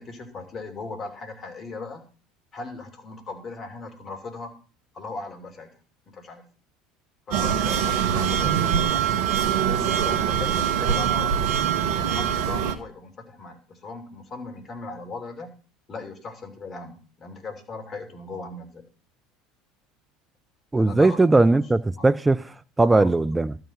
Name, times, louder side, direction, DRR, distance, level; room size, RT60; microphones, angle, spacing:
voice 1, 0.0-2.0 2.5-4.6 4.9-5.8 6.1-6.4 7.3-11.4 12.0-15.5 15.9-18.8 20.8-21.2 22.0-22.1 22.8-23.2, left 3 dB, 35° left, 2.9 m, -38 dB
sound 1, 7.3-12.7, right 8 dB, 60° right, 1.2 m, -23 dB
voice 2, 20.7-22.4 22.8-23.6, right 2 dB, 15° right, 0.6 m, -19 dB
12.5 x 4.9 x 7.7 m
figure-of-eight pair, 70°, 0 cm